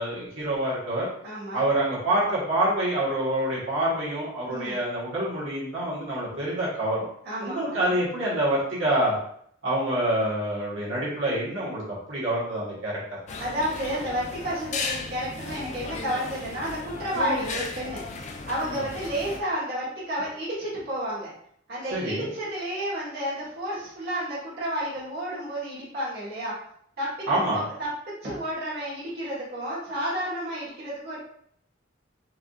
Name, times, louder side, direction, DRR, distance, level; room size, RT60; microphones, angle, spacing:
voice 1, 0.0-1.1 1.5-7.0 7.4-9.2 9.6-11.8 12.1-12.9 18.6-18.8 21.9-22.3 27.3-27.6, right 1 dB, 70° right, -7 dB, 1.4 m, -26 dB
voice 2, 1.2-1.6 4.5-4.8 7.2-8.0 13.4-18.0 18.5-21.3 21.7-26.5 27.0-27.3 27.5-27.9 28.2-31.2, equal, 55° right, -8 dB, 1.4 m, -31 dB
sound 1, 13.3-19.4, left 3 dB, 35° left, 0.4 m, -35 dB
4.7 x 2.6 x 2.4 m, 0.66 s
head